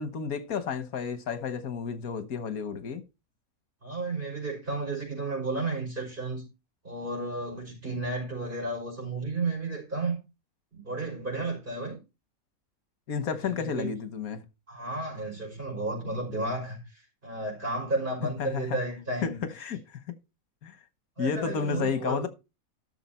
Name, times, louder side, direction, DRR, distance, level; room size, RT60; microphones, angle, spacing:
voice 1, 0.0-3.0 13.1-14.4 18.4-18.8 19.2-19.3 19.6-19.8 20.6-20.8 21.2-22.3, left 6 dB, 85° left, 1.6 m, -31 dB
voice 2, 3.8-6.4 6.8-10.2 10.7-12.0 13.3-13.9 14.7-19.4 21.2-22.2, right 2 dB, 35° right, 5.5 m, -33 dB
12.5 x 6.8 x 4.3 m
omnidirectional pair, 1.5 m